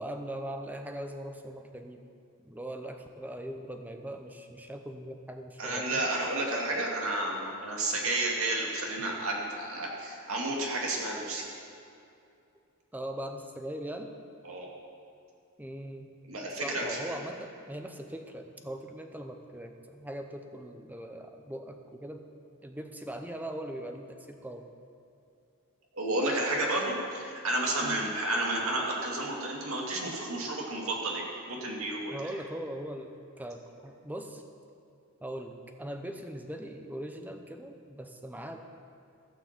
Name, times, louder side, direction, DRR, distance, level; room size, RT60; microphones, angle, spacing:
voice 1, 0.0-2.0 2.4-6.0 12.9-14.1 15.6-16.1 16.5-22.2 22.6-24.7 27.8-28.1 32.1-34.4 35.2-38.6, right 1 dB, 10° right, 5 dB, 0.7 m, -40 dB
voice 2, 5.6-11.4 14.4-14.7 16.3-17.2 25.9-32.2, right 2 dB, 65° right, -2 dB, 2.4 m, -31 dB
15.5 x 6.0 x 7.4 m, 2.6 s
head